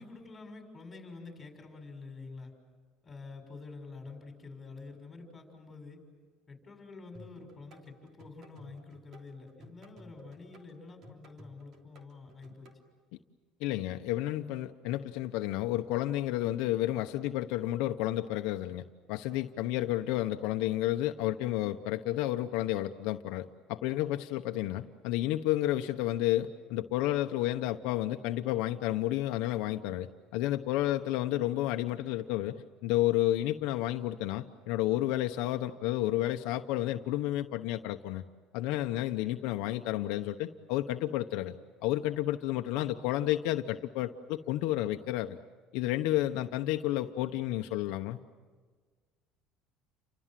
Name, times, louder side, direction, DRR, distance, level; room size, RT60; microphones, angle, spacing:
voice 1, 0.0-2.5 3.0-6.0 6.5-12.7, left 3 dB, 20° left, 4 dB, 6.4 m, -48 dB
sound 1, 7.1-12.8, equal, 50° right, 3.2 m, -55 dB
voice 2, 13.6-32.6 32.8-38.2 38.5-41.6 41.8-45.4 45.7-48.2, left 14 dB, 75° left, 6 dB, 0.9 m, -31 dB
30.0 x 25.0 x 7.6 m, 1.5 s
cardioid pair, 135°, 0 cm